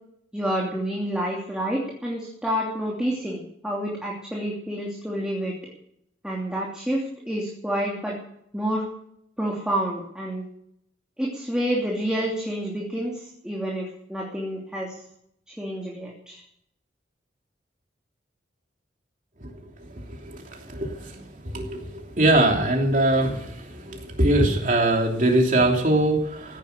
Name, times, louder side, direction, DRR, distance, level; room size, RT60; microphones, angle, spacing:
voice 1, 0.3-5.5 6.2-8.2 8.5-8.9 9.4-10.5 11.2-15.0 15.5-16.4, equal, 5° right, -3 dB, 2.9 m, -28 dB
voice 2, 20.1-26.6, right 1 dB, 45° right, 1 dB, 3.1 m, -22 dB
16.0 x 10.5 x 6.7 m, 0.72 s
head